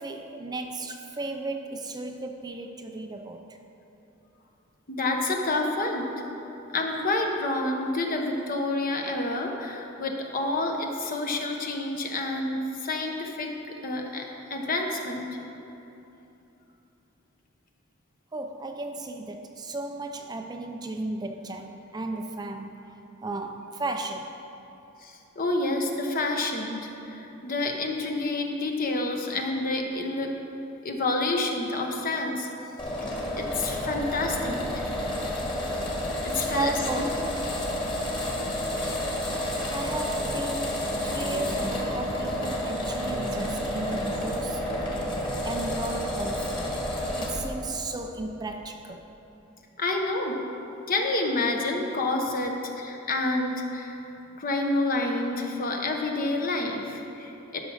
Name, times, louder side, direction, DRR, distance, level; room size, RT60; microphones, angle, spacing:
voice 1, 0.0-3.6 18.3-22.9 23.2-24.4 36.4-37.4 39.7-44.7 45.4-46.8 47.2-49.1, right 2 dB, 20° right, 5 dB, 0.4 m, -35 dB
voice 2, 4.9-6.1 6.7-15.4 25.0-30.4 30.8-32.5 33.4-34.8 36.2-37.1 49.8-50.4 50.9-54.0 54.4-57.6, left 2 dB, 40° left, 2 dB, 0.9 m, -28 dB
sound 1, 32.8-47.4, left 1 dB, 25° left, 1.9 m, -30 dB
Female speech woman speaking, 41.2-41.9 42.9-44.4 44.9-45.8, right 1 dB, 90° right, 1.1 m, -42 dB
12.0 x 5.9 x 6.3 m, 3.0 s
head